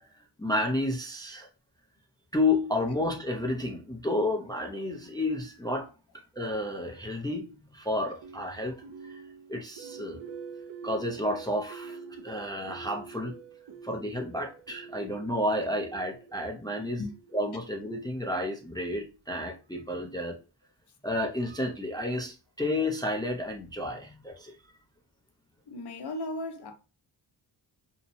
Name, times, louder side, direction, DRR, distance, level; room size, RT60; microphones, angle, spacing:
voice 1, 0.4-1.5 2.3-5.9 6.3-8.8 9.0-9.2 9.5-10.2 10.8-12.0 12.2-13.4 13.8-17.0 17.3-20.4 21.0-24.6, left 1 dB, 10° left, 0.4 m, -31 dB
sound 1, 8.2-18.3, right 5 dB, 60° right, 0.6 m, -46 dB
voice 2, 25.7-26.7, left 2 dB, 55° left, 0.7 m, -36 dB
2.8 x 2.0 x 2.6 m
wide cardioid pair, 95°, 49 cm